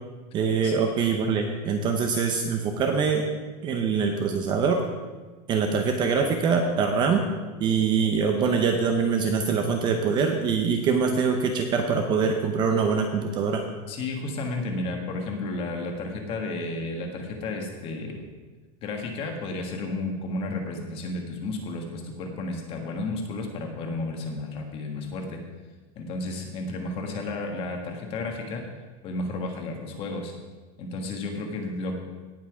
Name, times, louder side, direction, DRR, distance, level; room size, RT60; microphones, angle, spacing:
voice 1, 0.3-3.3 3.6-4.8 5.5-7.3 7.6-13.6, right 5 dB, 20° right, 4 dB, 0.7 m, -24 dB
voice 2, 13.9-18.3 18.8-25.4 25.9-28.6 29.0-30.3 30.8-32.0, left 2 dB, 30° left, 3 dB, 1.5 m, -32 dB
17.5 x 5.8 x 4.8 m, 1.3 s
supercardioid pair, 180°, 20 cm